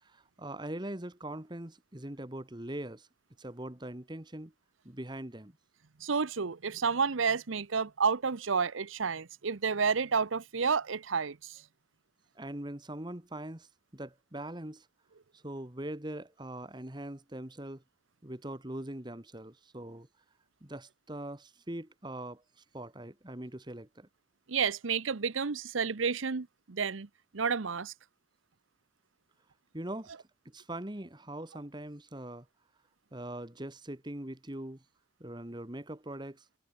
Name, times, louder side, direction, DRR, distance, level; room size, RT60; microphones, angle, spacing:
voice 1, 0.0-3.1 3.4-4.5 4.8-5.5 12.3-14.9 15.3-17.8 18.2-20.1 20.6-24.1 29.7-32.5 33.1-34.8 35.2-36.5, right 1 dB, 25° right, 1.6 m, -42 dB
voice 2, 6.0-11.6 24.5-27.1 27.3-27.9, right 5 dB, 90° right, 0.8 m, -30 dB
head